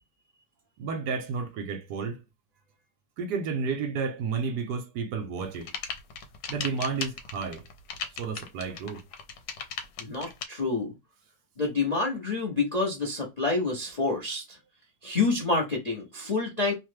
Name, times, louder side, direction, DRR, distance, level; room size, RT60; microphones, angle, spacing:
voice 1, 0.8-2.2 3.2-5.7 6.5-7.6 8.2-9.0, right 5 dB, 70° right, 1.1 m, -31 dB
sound 1, 5.4-10.4, left 6 dB, 80° left, 1.4 m, -36 dB
voice 2, 10.0-10.9 11.6-14.6 15.0-16.7, left 3 dB, 60° left, 0.4 m, -28 dB
3.1 x 2.2 x 3.1 m
omnidirectional pair, 2.0 m